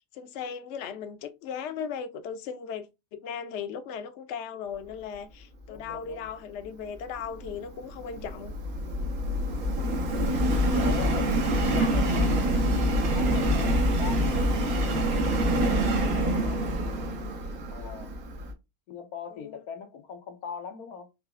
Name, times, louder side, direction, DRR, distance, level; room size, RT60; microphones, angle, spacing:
voice 1, 0.1-2.9 3.2-8.5 11.7-12.3 15.6-16.6 19.3-19.6, left 7 dB, 60° left, 0.8 m, -37 dB
voice 2, 5.7-6.4 9.6-10.1 10.7-14.5 17.7-18.1 18.9-21.1, left 6 dB, 90° left, 1.3 m, -41 dB
Subway metro underground, 7.2-18.5, equal, 75° right, 1.4 m, -26 dB
4.8 x 2.9 x 2.4 m
omnidirectional pair, 1.5 m